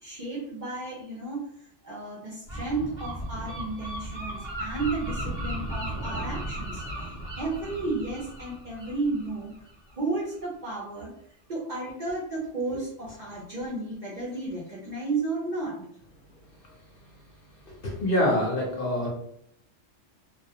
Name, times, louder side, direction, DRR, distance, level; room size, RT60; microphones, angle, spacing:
voice 1, 0.0-1.4 1.8-9.6 10.0-11.1 11.5-15.8, right 3 dB, 55° right, -5 dB, 0.5 m, -33 dB
Gull seagull, 2.5-10.0, right 1 dB, 25° right, 0.8 m, -36 dB
voice 2, 17.8-19.1, left 1 dB, 55° left, -2 dB, 0.7 m, -25 dB
2.3 x 2.1 x 2.7 m, 0.70 s
omnidirectional pair, 1.3 m